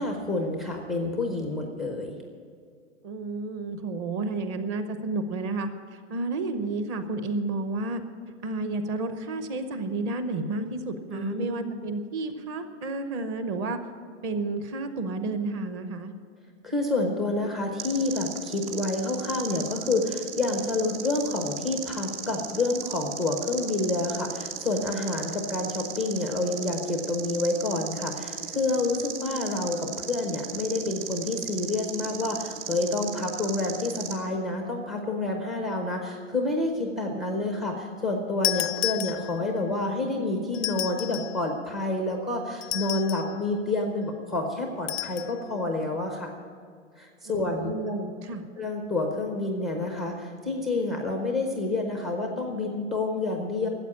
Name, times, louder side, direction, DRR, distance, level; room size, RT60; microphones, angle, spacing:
voice 1, 0.0-2.2 11.1-11.6 16.6-46.3 47.0-48.0 48.6-53.7, left 2 dB, ahead, 2 dB, 0.4 m, -28 dB
voice 2, 3.0-8.0 8.4-13.8 14.2-16.1 47.2-48.5, right 3 dB, 25° right, 8 dB, 0.8 m, -31 dB
sound 1, 17.8-34.1, right 8 dB, 60° right, 2.1 m, -36 dB
sound 2, 38.4-39.6 40.5-41.4 42.6-43.4 44.9-45.3, left 14 dB, 70° left, 0.5 m, -31 dB
13.5 x 8.1 x 9.7 m, 2.1 s
hypercardioid pair, 160°, 38 cm